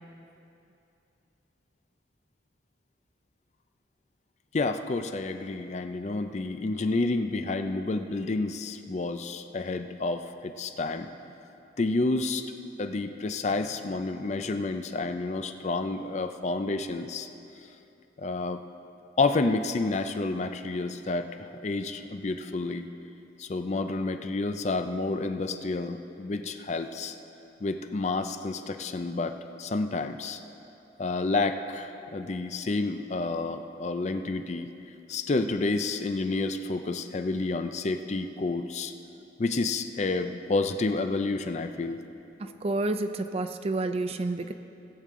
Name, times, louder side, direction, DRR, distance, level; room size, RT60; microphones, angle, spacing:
voice 1, 4.5-11.1 11.8-12.5 12.8-17.3 18.2-18.6 19.2-22.9 23.4-27.2 27.6-30.4 31.0-34.7 35.1-38.9 39.4-42.0, left 3 dB, 40° left, 8 dB, 0.4 m, -29 dB
voice 2, 42.6-44.5, right 2 dB, 35° right, 9 dB, 0.4 m, -29 dB
18.0 x 8.4 x 3.7 m, 2.8 s
head